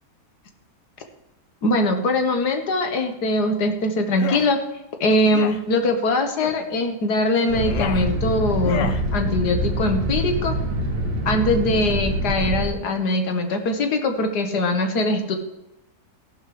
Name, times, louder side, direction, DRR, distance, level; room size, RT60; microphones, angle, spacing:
voice 1, 1.6-4.6 5.0-10.6 11.3-15.4, left 2 dB, 75° left, 5 dB, 1.9 m, -22 dB
sound 1, 4.1-4.5 5.3-5.6 6.4-6.6 7.4-8.0 8.6-9.0, left 8 dB, 60° left, 0.9 m, -31 dB
sound 2, 7.5-12.7, right 1 dB, 85° right, 2.3 m, -25 dB
14.5 x 11.0 x 3.3 m, 0.90 s
omnidirectional pair, 1.8 m